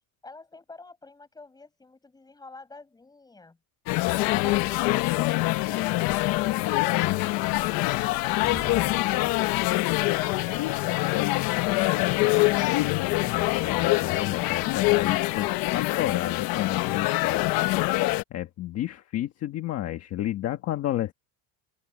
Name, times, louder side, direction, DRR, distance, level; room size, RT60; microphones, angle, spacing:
voice 1, 0.2-3.6, left 3 dB, 10° left, 7.4 m, -49 dB
sound 1, 3.9-18.2, left 20 dB, 65° left, 1.0 m, -25 dB
sound 2, 8.4-11.0 11.4-11.5, right 2 dB, 10° right, 4.6 m, -44 dB
voice 2, 13.0-17.5 18.3-21.1, left 13 dB, 40° left, 1.4 m, -31 dB
open air
cardioid pair, 170°, 37 cm